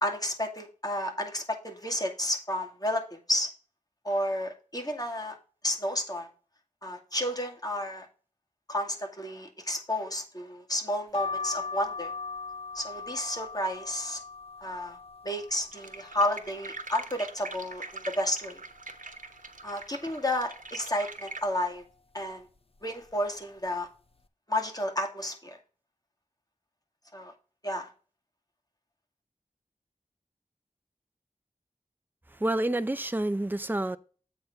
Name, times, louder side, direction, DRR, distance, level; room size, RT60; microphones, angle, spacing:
voice 1, 0.0-3.5 4.0-5.4 5.6-6.3 6.8-8.1 8.7-12.1 12.7-14.2 14.6-15.0 15.2-18.6 19.6-21.8 22.1-22.5 22.8-23.9 24.5-25.6 27.1-27.3 27.6-27.9, left 1 dB, 30° left, 2.2 m, -31 dB
sound 1, 11.1-16.8 17.3-18.0 18.4-18.5 18.7-19.8 20.3-20.7 21.4-21.8 22.6-22.8 23.1-23.3, left 4 dB, 45° left, 0.7 m, -40 dB
sound 2, 15.7-21.4, right 3 dB, 70° right, 1.1 m, -43 dB
voice 2, 32.3-34.0, right 1 dB, 15° right, 0.6 m, -28 dB
8.0 x 4.0 x 5.7 m
wide cardioid pair, 50°, 14 cm